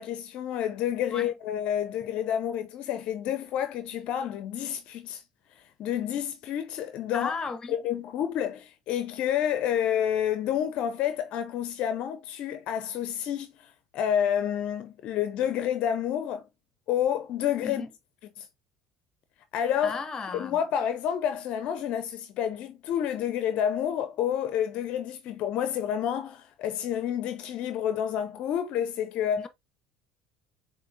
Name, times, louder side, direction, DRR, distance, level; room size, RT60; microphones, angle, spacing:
voice 1, 0.0-5.2 5.8-7.3 7.7-16.5 16.9-17.9 18.4-18.5 19.5-20.0 20.3-29.5, left 9 dB, 60° left, 0.5 m, -29 dB
voice 2, 7.1-7.8 17.6-17.9 19.8-20.6, left 4 dB, 30° left, 0.8 m, -34 dB
7.6 x 2.7 x 2.5 m
hypercardioid pair, 75°, 2 cm